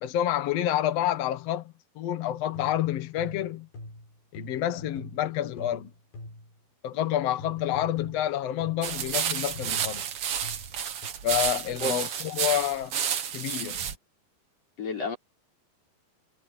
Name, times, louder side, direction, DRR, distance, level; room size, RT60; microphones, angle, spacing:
voice 1, 0.0-3.7 4.3-5.9 6.8-10.0 11.2-12.9 13.3-13.8, left 12 dB, 90° left, 1.4 m, -28 dB
sound 1, 2.5-6.6 7.4-9.0 9.6-11.1, left 2 dB, 60° left, 9.0 m, -44 dB
sound 2, 8.8-13.9, right 8 dB, 90° right, 1.3 m, -31 dB
voice 2, 11.8-12.2 14.8-15.2, left 2 dB, 35° left, 6.8 m, -31 dB
omnidirectional pair, 5.0 m